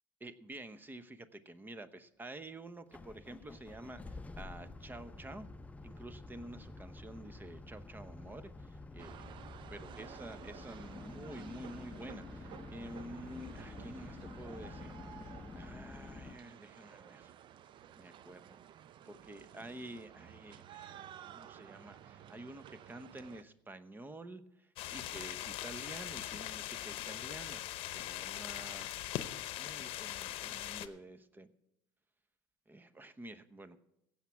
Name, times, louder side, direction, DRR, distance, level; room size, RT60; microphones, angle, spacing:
voice 1, 0.2-5.5 5.8-9.3 9.7-17.3 18.0-18.6 19.0-21.0 21.3-28.9 29.6-31.5 32.7-33.8, right 1 dB, 20° right, 14 dB, 0.9 m, -49 dB
sound 1, 2.9-16.4, left 3 dB, 15° left, 0.7 m, -49 dB
sound 2, 9.0-23.4, right 10 dB, 50° right, 0.6 m, -53 dB
sound 3, 24.8-30.9, left 14 dB, 60° left, 0.8 m, -41 dB
16.5 x 7.3 x 5.8 m, 0.82 s
supercardioid pair, 80°, 11 cm